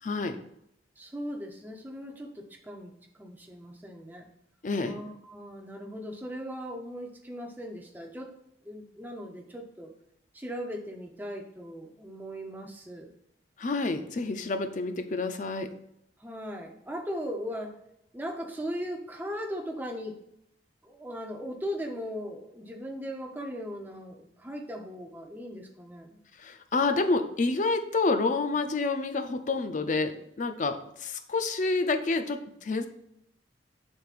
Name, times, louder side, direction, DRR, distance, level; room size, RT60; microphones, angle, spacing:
voice 1, 0.0-0.4 4.6-4.9 13.6-15.7 26.4-32.9, left 3 dB, 45° left, 8 dB, 0.5 m, -28 dB
voice 2, 1.0-4.2 4.8-8.3 8.6-9.9 10.3-13.1 16.2-17.7 18.1-20.1 20.8-26.2, equal, 10° right, 2 dB, 0.7 m, -38 dB
7.6 x 5.3 x 2.5 m, 0.77 s
head